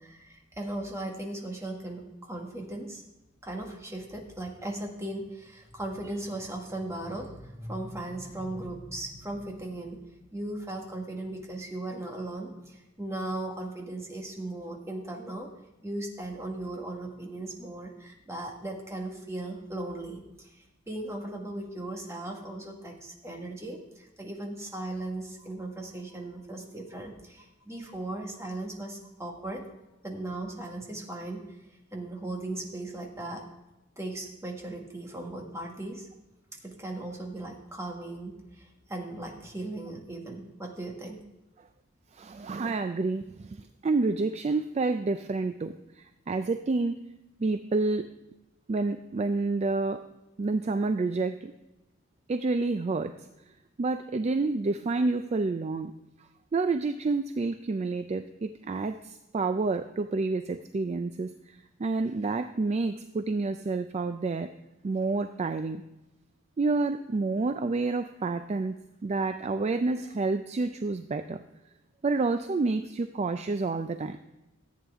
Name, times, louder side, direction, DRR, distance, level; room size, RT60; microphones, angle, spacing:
voice 1, 0.0-3.0 3.4-10.0 10.3-15.5 15.8-29.7 30.0-31.4 31.9-33.4 34.0-36.1 36.6-41.2, right 2 dB, 15° right, 1 dB, 1.6 m, -37 dB
voice 2, 42.1-47.0 47.4-48.1 48.7-50.0 50.4-51.5 52.3-53.1 53.8-55.9 56.5-64.5 64.8-65.8 66.6-68.7 69.0-71.4 72.0-74.2, right 3 dB, 35° right, 9 dB, 0.3 m, -29 dB
14.5 x 8.7 x 3.6 m, 0.97 s
head